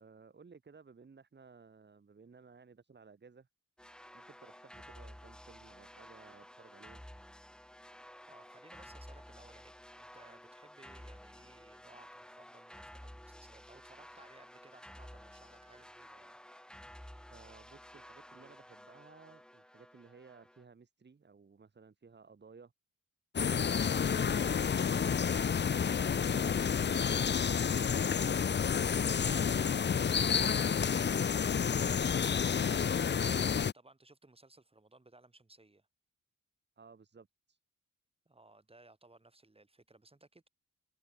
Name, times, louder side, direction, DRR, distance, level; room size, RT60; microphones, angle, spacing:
voice 1, 0.0-3.5 4.1-7.0 17.3-22.7 36.8-37.6, right 5 dB, 35° right, 2.6 m, -58 dB
sound 1, 3.8-20.6, equal, 5° left, 1.3 m, -53 dB
voice 2, 8.3-16.4 24.2-24.6 29.3-35.9 38.3-40.5, right 2 dB, 20° right, 8.0 m, -60 dB
sound 2, 23.4-33.7, left 7 dB, 35° left, 0.7 m, -30 dB
wide cardioid pair, 110°, 31 cm